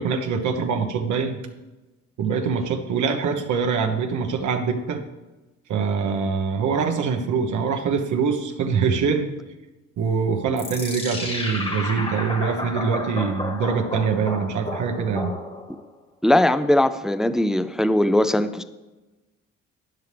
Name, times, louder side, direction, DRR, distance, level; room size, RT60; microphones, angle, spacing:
voice 1, 0.0-1.4 2.2-5.0 5.7-9.3 10.0-15.3, right 5 dB, 75° right, 5 dB, 1.2 m, -24 dB
sound 1, 10.6-15.9, left 2 dB, 20° left, 1.3 m, -32 dB
voice 2, 16.2-18.6, left 1 dB, ahead, 11 dB, 0.4 m, -20 dB
13.0 x 9.5 x 3.4 m, 1.1 s
cardioid pair, 90°, 30 cm